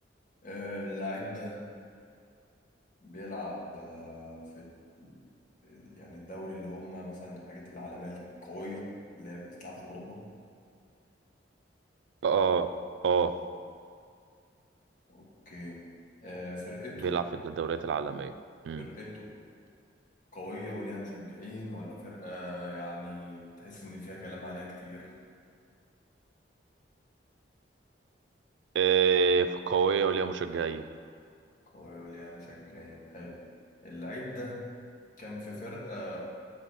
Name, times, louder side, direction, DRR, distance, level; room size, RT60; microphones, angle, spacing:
voice 1, 0.4-1.6 3.0-5.2 5.6-10.2 15.1-15.8 16.2-17.2 18.8-19.3 20.3-25.1 31.7-33.4 33.8-34.6 35.2-36.2, left 1 dB, 45° left, -5 dB, 1.7 m, -41 dB
voice 2, 12.2-12.7 13.0-13.3 17.0-18.3 18.6-18.9 28.7-30.8, right 6 dB, 75° right, 10 dB, 0.3 m, -26 dB
7.2 x 4.0 x 6.2 m, 2.3 s
head